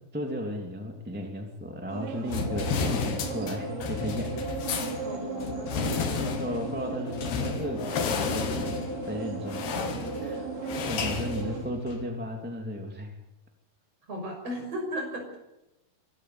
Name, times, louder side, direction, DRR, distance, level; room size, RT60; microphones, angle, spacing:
voice 1, 0.1-4.5 5.9-8.8 9.1-9.7 10.2-10.5 10.9-13.1, equal, 5° right, 2 dB, 2.2 m, -35 dB
sound 1, 1.9-11.7, right 6 dB, 60° right, 4.1 m, -37 dB
sound 2, 2.3-12.1, left 5 dB, 90° left, 4.3 m, -32 dB
sound 3, 2.3-11.2, left 7 dB, 70° left, 2.2 m, -42 dB
voice 2, 5.0-6.3 10.1-10.4 14.1-15.4, equal, 40° right, 3 dB, 7.2 m, -37 dB
24.5 x 14.0 x 8.1 m, 0.92 s
omnidirectional pair, 4.5 m